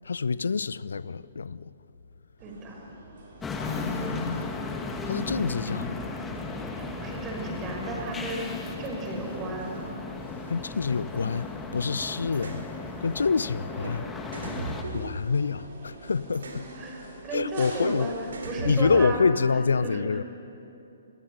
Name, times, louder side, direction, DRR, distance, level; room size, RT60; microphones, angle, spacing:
voice 1, 0.1-1.7 3.5-4.4 5.1-6.0 10.5-12.6 13.0-14.1 14.9-16.6 17.3-18.1 18.6-20.2, left 5 dB, 65° left, 0.7 m, -27 dB
voice 2, 2.4-2.8 6.8-9.8 16.7-20.2, right 2 dB, 20° right, 6.0 m, -34 dB
sound 1, 2.4-19.1, right 2 dB, 50° right, 5.9 m, -48 dB
sound 2, 3.4-14.8, left 3 dB, 10° left, 2.2 m, -36 dB
sound 3, 12.3-12.6 13.8-14.0 14.3-15.7 16.3-16.7 17.8-18.0 18.3-19.4, right 2 dB, 65° right, 4.2 m, -37 dB
29.5 x 23.5 x 6.7 m
figure-of-eight pair, 120°, 0 cm